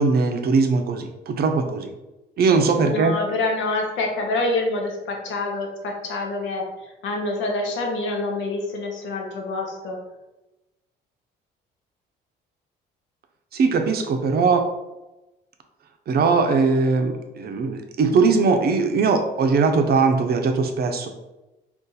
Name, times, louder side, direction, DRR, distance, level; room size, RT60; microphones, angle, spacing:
voice 1, 0.0-1.9 2.4-3.2 13.5-14.6 16.1-21.1, right 4 dB, 50° right, 5 dB, 0.5 m, -20 dB
voice 2, 2.8-10.0, left 2 dB, 75° left, 1 dB, 0.8 m, -26 dB
2.6 x 2.4 x 3.9 m, 1.0 s
supercardioid pair, 75°, 20 cm